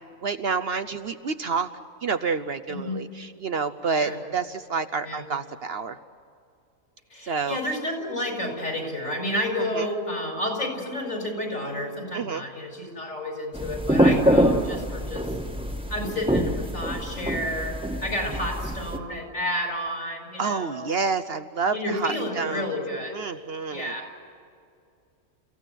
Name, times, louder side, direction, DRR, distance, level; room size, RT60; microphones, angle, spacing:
voice 1, 0.0-1.7 2.0-6.0 7.2-7.6 9.6-9.9 12.1-12.4 20.4-22.8 23.1-23.9, right 5 dB, 55° right, 9 dB, 0.9 m, -29 dB
voice 2, 2.7-3.0 4.0-4.2 5.0-5.2 7.1-15.3 15.9-17.8 18.0-20.9 21.7-23.1 23.7-24.1, left 1 dB, 70° left, 2 dB, 5.6 m, -30 dB
sound 1, 13.5-19.0, equal, 5° right, 1.4 m, -25 dB
29.5 x 16.0 x 9.1 m, 2.4 s
omnidirectional pair, 1.4 m